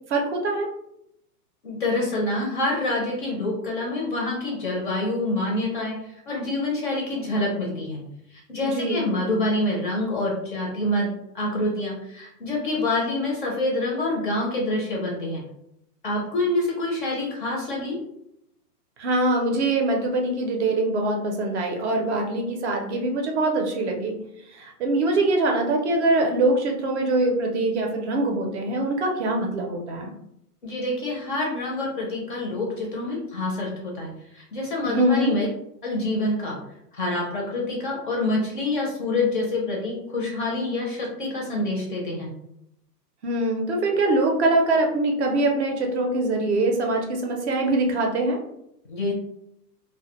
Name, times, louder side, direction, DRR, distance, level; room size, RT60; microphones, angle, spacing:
voice 1, 0.1-0.7 8.6-9.1 19.0-24.1 24.5-30.1 34.9-35.3 43.2-48.4, right 2 dB, 45° right, 1 dB, 0.5 m, -23 dB
voice 2, 1.6-6.0 6.3-8.0 8.5-15.4 16.0-18.0 30.6-35.5 35.8-36.6 37.0-42.3 48.9-49.1, left 2 dB, 35° left, -2 dB, 0.4 m, -26 dB
2.1 x 2.1 x 2.8 m, 0.79 s
hypercardioid pair, 150°, 48 cm